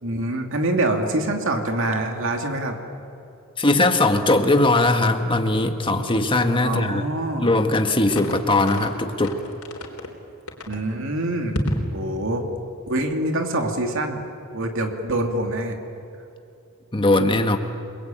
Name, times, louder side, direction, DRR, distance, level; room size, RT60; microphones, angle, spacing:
voice 1, 0.0-2.8 6.6-7.5 10.7-11.6 11.9-12.5 12.9-14.2 14.5-15.8, right 1 dB, 65° right, 4 dB, 2.5 m, -25 dB
voice 2, 3.6-7.0 7.4-9.4 16.9-17.6, left 2 dB, 25° left, 6 dB, 1.7 m, -20 dB
sound 1, 8.1-8.9 9.2-10.1 10.5-10.8 11.5-12.0, left 1 dB, 85° left, 3.8 m, -29 dB
29.5 x 21.0 x 9.0 m, 2.7 s
head